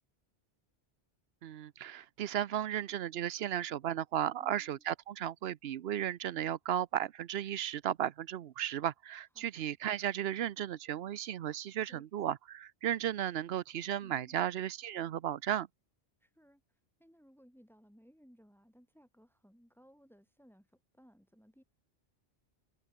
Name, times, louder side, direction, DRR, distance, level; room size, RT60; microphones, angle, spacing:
voice 1, 1.4-15.7, right 11 dB, 75° right, 0.9 m, -35 dB
voice 2, 4.4-4.8 9.3-9.5 11.9-12.1 14.0-14.5 16.2-21.6, equal, ahead, 7.7 m, -62 dB
open air
omnidirectional pair, 1.1 m